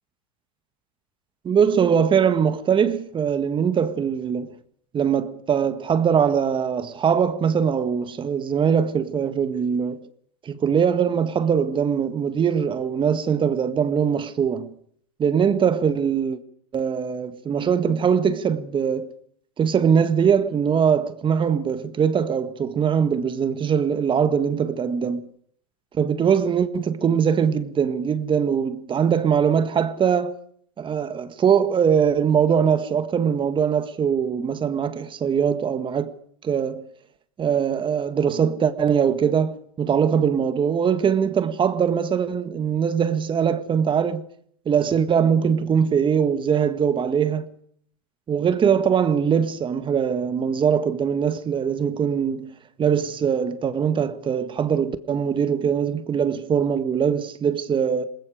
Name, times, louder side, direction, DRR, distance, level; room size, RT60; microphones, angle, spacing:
voice 1, 1.5-4.5 4.9-10.0 10.5-14.7 15.2-16.4 16.7-19.1 19.6-25.3 26.0-30.4 30.8-36.1 36.4-36.9 37.4-44.2 44.7-47.5 48.3-58.0, right 7 dB, 25° right, 1.7 m, -22 dB
27.5 x 20.5 x 5.0 m
hypercardioid pair, 105°, 19 cm